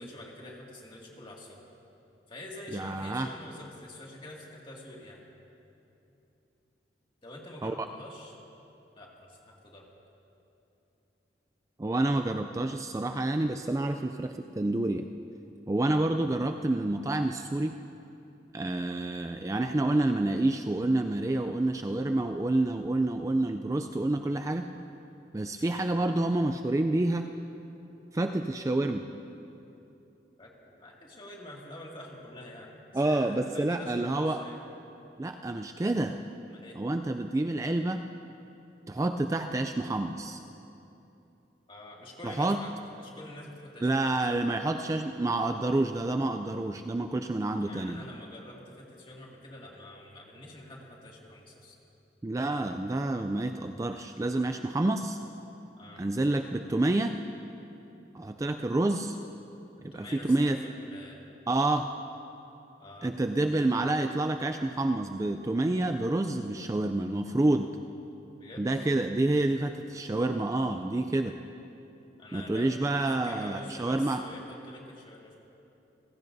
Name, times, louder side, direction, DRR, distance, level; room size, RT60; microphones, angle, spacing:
voice 1, 0.0-1.6 2.3-5.2 7.2-8.4 9.0-9.9 15.9-16.1 30.4-34.6 36.5-36.8 41.7-42.7 43.0-44.4 47.6-51.8 55.8-56.1 59.9-61.3 62.8-63.1 63.6-63.9 68.4-68.7 72.2-72.8 73.1-75.4, left 1 dB, 30° left, -2 dB, 2.2 m, -46 dB
voice 2, 2.7-3.3 7.6-7.7 11.8-15.1 15.7-17.8 18.5-24.7 25.3-27.3 28.1-29.1 32.9-34.4 35.2-36.2 36.8-38.0 38.9-40.4 42.2-42.6 43.8-48.0 52.2-55.2 56.0-57.2 58.1-59.2 59.8-60.6 61.5-61.9 63.0-67.7 68.6-71.3 72.3-74.2, right 2 dB, 20° right, 6 dB, 0.3 m, -28 dB
29.5 x 16.0 x 2.7 m, 2.9 s
head